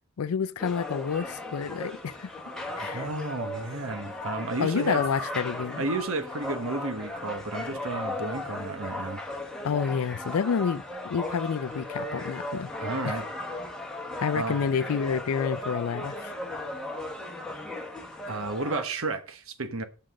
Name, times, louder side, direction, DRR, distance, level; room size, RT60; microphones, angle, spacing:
voice 1, 0.2-2.3 2.8-3.1 4.6-5.8 9.6-12.7 13.0-13.1 14.2-16.3, left 6 dB, 75° left, 0.4 m, -29 dB
sound 1, 0.6-18.8, left 1 dB, 5° left, 1.4 m, -36 dB
voice 2, 2.8-5.0 5.8-9.2 12.8-13.3 14.4-14.7 18.3-19.8, right 3 dB, 65° right, 1.1 m, -32 dB
6.5 x 5.8 x 6.2 m
head